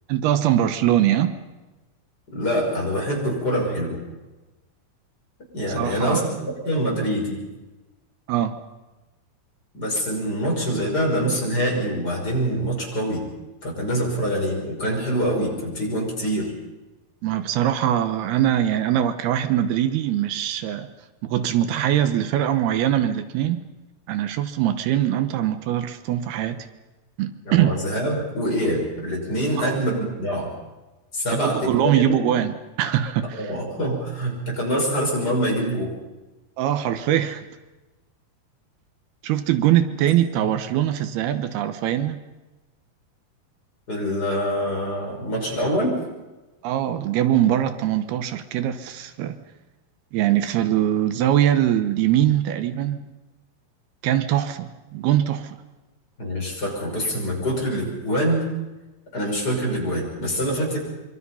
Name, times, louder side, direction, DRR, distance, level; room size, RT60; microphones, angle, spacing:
voice 1, 0.1-1.4 5.7-6.4 8.3-8.6 17.2-20.9 21.2-23.6 24.1-26.6 27.2-27.7 29.6-29.8 31.4-33.5 36.6-37.5 39.2-42.2 46.6-49.4 50.1-53.0 54.0-55.6, right 11 dB, 80° right, 10 dB, 3.0 m, -22 dB
voice 2, 2.3-4.0 5.5-7.4 9.7-13.3 13.6-16.5 27.4-30.5 31.1-32.2 33.3-35.9 43.9-46.0 56.2-58.4 59.1-60.8, equal, 25° left, -1 dB, 6.1 m, -25 dB
26.5 x 24.0 x 5.6 m, 1.1 s
omnidirectional pair, 4.5 m